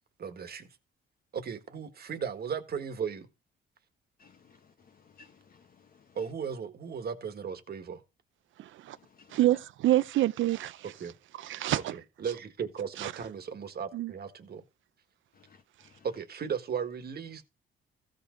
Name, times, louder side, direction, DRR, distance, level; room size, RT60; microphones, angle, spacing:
voice 1, 0.2-0.7 1.3-3.3 6.1-8.0 11.0-11.1 11.9-14.6 16.0-17.5, right 7 dB, 50° right, 1.6 m, -36 dB
voice 2, 4.2-6.2 8.9-9.4 15.3-16.1, left 5 dB, 45° left, 1.0 m, -60 dB
voice 3, 9.3-10.8 11.4-11.9 13.0-13.1 13.9-14.1, right 14 dB, 75° right, 0.7 m, -26 dB
15.0 x 5.3 x 3.8 m
cardioid pair, 90°, 20 cm